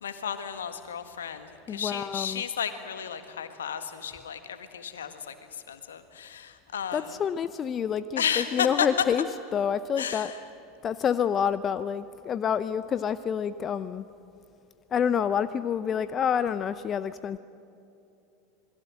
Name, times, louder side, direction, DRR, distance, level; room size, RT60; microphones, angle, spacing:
voice 1, 0.0-5.3 5.7-7.1 8.2-8.9 10.0-10.3, left 8 dB, 75° left, 9 dB, 1.7 m, -33 dB
voice 2, 1.7-2.4 6.9-10.3 10.8-14.0 14.9-17.4, left 8 dB, 35° left, 14 dB, 0.7 m, -28 dB
27.5 x 21.5 x 7.7 m, 2.7 s
figure-of-eight pair, 80°, 0 cm